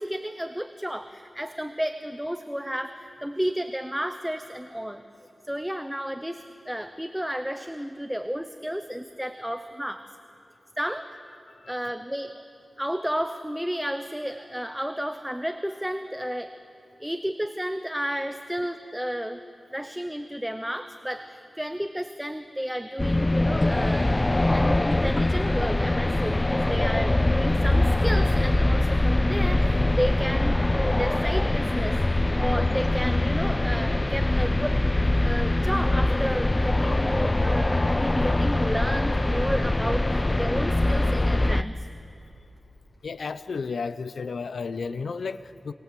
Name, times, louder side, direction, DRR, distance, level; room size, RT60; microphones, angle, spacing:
voice 1, 0.0-5.0 5.4-10.0 10.8-11.1 11.7-12.4 12.8-16.5 17.0-19.4 19.7-24.1 24.5-32.0 32.4-34.8 35.2-41.7, equal, 5° right, 8 dB, 0.8 m, -32 dB
sound 1, 23.0-41.6, left 2 dB, 20° left, 0.5 m, -23 dB
voice 2, 43.0-45.7, left 5 dB, 85° left, 14 dB, 0.7 m, -32 dB
26.0 x 25.5 x 7.6 m, 2.9 s
wide cardioid pair, 110°, 0 cm